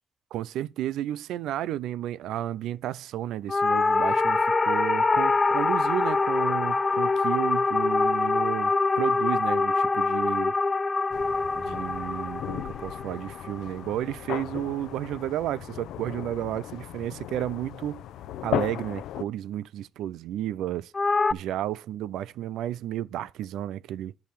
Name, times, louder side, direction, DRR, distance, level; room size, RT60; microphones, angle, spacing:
voice 1, 0.3-10.5 11.6-18.0 18.4-20.9 21.3-24.1, right 12 dB, 85° right, 0.5 m, -32 dB
sound 1, 3.5-14.0 20.9-21.3, left 3 dB, 25° left, 0.5 m, -24 dB
sound 2, 11.1-19.2, left 12 dB, 85° left, 0.6 m, -36 dB
10.5 x 4.8 x 7.4 m
cardioid pair, 90°, 0 cm